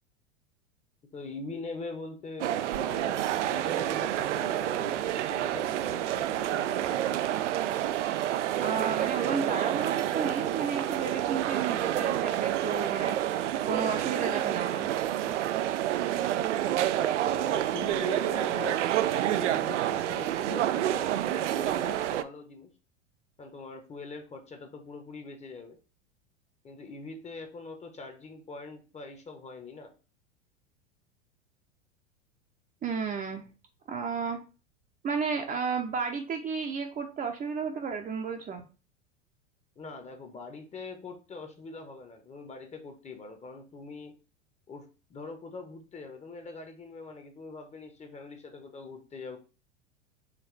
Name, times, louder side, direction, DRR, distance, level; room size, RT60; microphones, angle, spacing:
voice 1, 1.1-7.0 16.6-22.7 23.4-25.8 26.6-30.0 39.8-44.2 44.7-49.4, left 4 dB, 20° left, 6 dB, 0.9 m, -43 dB
sound 1, 2.4-22.2, right 12 dB, 75° right, 0.5 m, -29 dB
voice 2, 8.6-14.9 32.8-33.4 33.9-34.4 35.0-38.6, right 5 dB, 20° right, 3 dB, 0.7 m, -32 dB
5.1 x 3.2 x 3.2 m, 0.33 s
hypercardioid pair, 90°, 37 cm